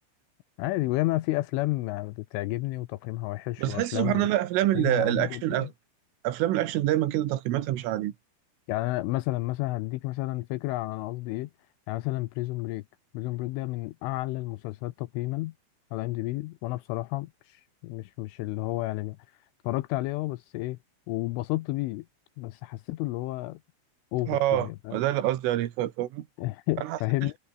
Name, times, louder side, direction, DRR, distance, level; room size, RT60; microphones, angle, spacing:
voice 1, 0.6-4.3 4.7-5.7 8.7-11.5 11.9-12.8 13.1-15.5 15.9-19.2 19.6-20.8 21.1-22.1 22.4-23.6 24.1-25.0 26.4-27.4, left 19 dB, 80° left, 3.2 m, -31 dB
voice 2, 3.6-5.7 6.2-8.1 24.3-26.3 26.8-27.0, right 14 dB, 85° right, 4.2 m, -26 dB
omnidirectional pair, 5.7 m